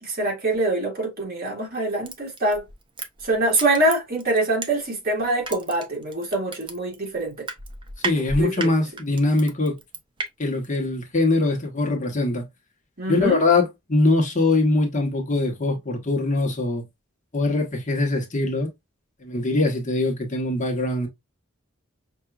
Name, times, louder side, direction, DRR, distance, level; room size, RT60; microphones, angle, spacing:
voice 1, 0.0-2.6 3.2-7.5 8.4-8.7 13.0-13.4, right 2 dB, 50° right, 2.0 m, -24 dB
Crushing, 2.1-5.1 5.4-10.3 10.6-10.7, right 3 dB, 25° right, 0.7 m, -33 dB
voice 2, 8.0-9.8 10.4-12.4 13.1-16.8 17.3-18.7 19.2-21.1, left 2 dB, 40° left, 1.2 m, -22 dB
5.8 x 2.6 x 2.4 m
head